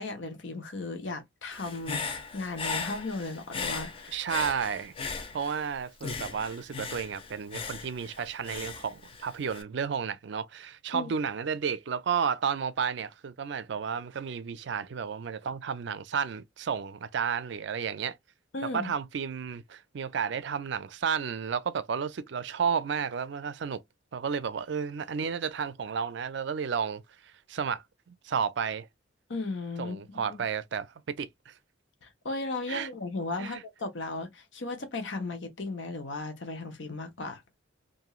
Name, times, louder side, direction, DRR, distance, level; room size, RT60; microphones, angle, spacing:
voice 1, 0.0-4.2 10.9-11.1 18.5-18.9 29.3-30.4 32.0-37.4, left 3 dB, 70° left, 0.9 m, -36 dB
Human voice / Breathing, 1.5-5.7 6.0-9.6, left 4 dB, 30° left, 0.4 m, -37 dB
voice 2, 4.1-4.9 5.3-18.2 18.7-23.8 24.1-27.0 27.5-28.9 29.8-31.5 32.7-32.9 33.4-33.6, right 6 dB, 65° right, 0.4 m, -32 dB
3.0 x 2.6 x 2.3 m
head